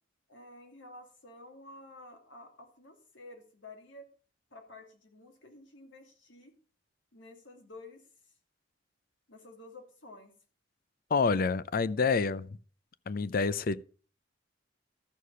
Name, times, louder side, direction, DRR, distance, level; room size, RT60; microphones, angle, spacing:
voice 1, 0.3-4.1 4.5-6.5 7.1-8.0 9.3-10.3, left 2 dB, 85° left, 2.5 m, -51 dB
voice 2, 11.1-12.5 13.1-13.8, left 4 dB, 50° left, 0.5 m, -27 dB
13.0 x 6.6 x 5.5 m
head